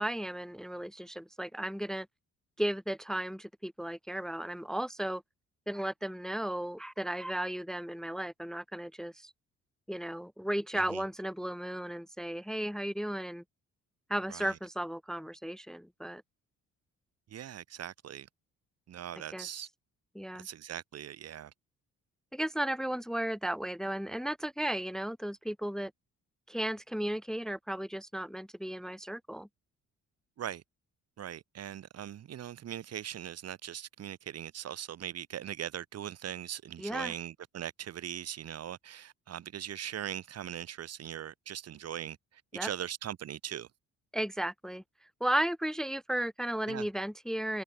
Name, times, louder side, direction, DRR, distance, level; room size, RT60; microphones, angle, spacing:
voice 1, 0.0-2.1 2.6-5.2 5.7-9.3 9.9-13.4 14.1-16.2 19.3-19.5 20.1-20.5 22.3-25.9 26.5-29.5 36.8-37.1 42.5-42.7 44.1-44.8 45.2-47.6, right 1 dB, ahead, 0.8 m, -35 dB
voice 2, 10.7-11.0 14.3-14.6 17.3-18.3 18.9-19.7 20.4-21.5 30.4-30.6 31.2-43.7 46.7-46.9, right 10 dB, 55° right, 1.1 m, -40 dB
cardioid pair, 90°, 30 cm